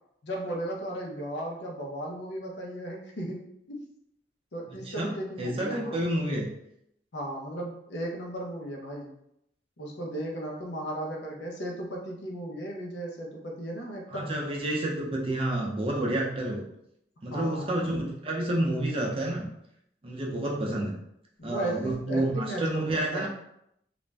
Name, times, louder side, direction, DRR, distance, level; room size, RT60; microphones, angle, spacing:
voice 1, 0.2-3.8 4.5-6.0 7.1-9.1 9.8-14.3 17.3-17.7 21.4-23.3, right 1 dB, 75° left, -1 dB, 0.6 m, -36 dB
voice 2, 4.7-5.1 5.4-6.5 14.1-16.6 17.2-19.5 20.0-21.0 21.4-23.3, right 1 dB, 30° right, -2 dB, 0.5 m, -29 dB
2.5 x 2.0 x 3.2 m, 0.76 s
head